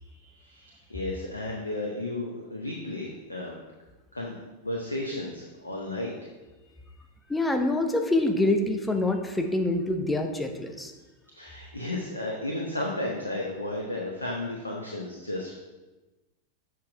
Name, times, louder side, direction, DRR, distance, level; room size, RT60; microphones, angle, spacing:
voice 1, 0.0-3.6 4.1-6.1 11.3-15.5, left 1 dB, 80° left, -1 dB, 0.9 m, -33 dB
voice 2, 7.3-10.9, left 2 dB, 10° left, 5 dB, 0.9 m, -26 dB
7.6 x 5.5 x 4.7 m, 1.2 s
figure-of-eight pair, 90°, 0 cm